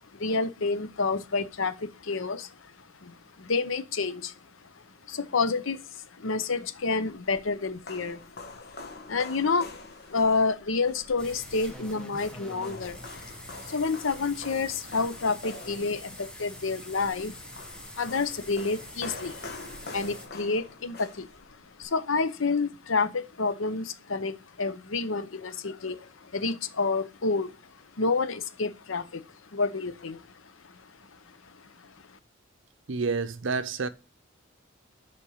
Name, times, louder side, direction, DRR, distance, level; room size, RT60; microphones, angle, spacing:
voice 1, 0.1-2.7 3.0-4.3 5.1-9.7 10.1-13.0 13.6-17.4 18.0-19.4 19.9-21.3 21.8-27.5 28.0-29.2 29.5-30.2 30.6-30.8 31.8-31.9, left 4 dB, 75° left, 0.8 m, -29 dB
sound 1, 7.1-21.8, left 3 dB, 50° left, 1.3 m, -46 dB
sound 2, 11.2-20.3, left 1 dB, 5° left, 1.3 m, -45 dB
voice 2, 32.9-33.9, right 4 dB, 65° right, 0.7 m, -29 dB
6.8 x 5.3 x 6.4 m
head